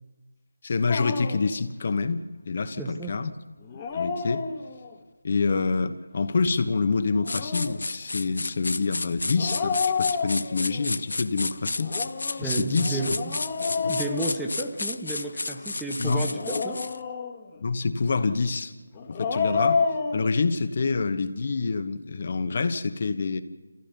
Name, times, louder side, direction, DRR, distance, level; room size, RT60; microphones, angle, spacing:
voice 1, 0.6-3.3 3.9-4.4 5.2-11.9 12.4-13.0 16.0-16.3 17.6-18.7 19.1-19.9 20.1-23.4, left 4 dB, 45° left, 1.2 m, -27 dB
Dog, 0.9-1.5 3.6-5.0 7.1-7.9 9.4-10.8 11.8-15.0 16.2-17.6 18.9-20.3, left 5 dB, 25° left, 1.5 m, -30 dB
voice 2, 2.8-3.1 12.4-13.4 13.9-16.8, right 2 dB, 5° right, 1.1 m, -32 dB
sound 1, 7.3-17.0, left 3 dB, 70° left, 0.7 m, -32 dB
28.0 x 15.5 x 6.9 m
figure-of-eight pair, 160°, 0 cm